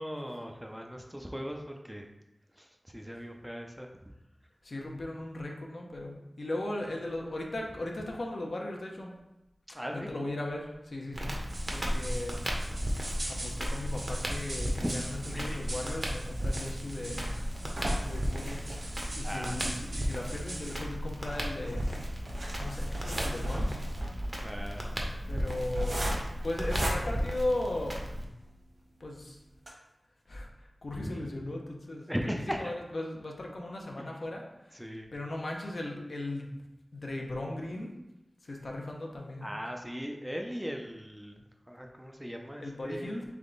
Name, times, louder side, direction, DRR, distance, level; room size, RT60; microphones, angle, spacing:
voice 1, 0.0-2.0 2.5-3.9 9.7-10.1 14.8-14.9 15.2-15.6 18.6-18.7 19.2-19.6 24.4-24.9 31.0-31.1 32.1-32.7 34.0-34.1 34.7-35.1 39.4-43.1, equal, 5° right, 2 dB, 0.5 m, -38 dB
voice 2, 4.6-9.1 9.9-11.3 11.7-12.4 13.3-18.9 19.2-21.9 22.6-24.1 25.3-26.1 26.4-28.0 29.0-29.4 30.3-30.5 30.8-32.1 32.6-34.8 35.1-36.5 36.9-37.9 38.4-39.5 42.5-43.2, left 1 dB, 65° left, 0 dB, 0.7 m, -37 dB
Crackle, 11.1-28.2, equal, 30° right, 0.8 m, -35 dB
sound 1, 11.5-20.8, right 1 dB, 70° right, 1.1 m, -43 dB
sound 2, 16.9-28.1 28.7-28.8 29.1-29.2 29.5-29.7, equal, 55° right, 1.3 m, -37 dB
3.5 x 3.4 x 3.9 m, 0.94 s
wide cardioid pair, 75°, 0 cm